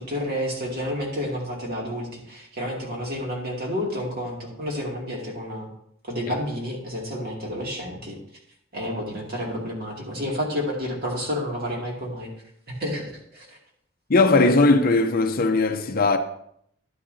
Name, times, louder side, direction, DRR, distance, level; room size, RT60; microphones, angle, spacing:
voice 1, 0.0-5.7 6.0-8.2 8.7-12.3 12.7-13.5, equal, 45° right, 2.4 m, -30 dB
voice 2, 14.1-16.2, left 3 dB, 45° left, 0.6 m, -18 dB
11.0 x 9.9 x 2.7 m
head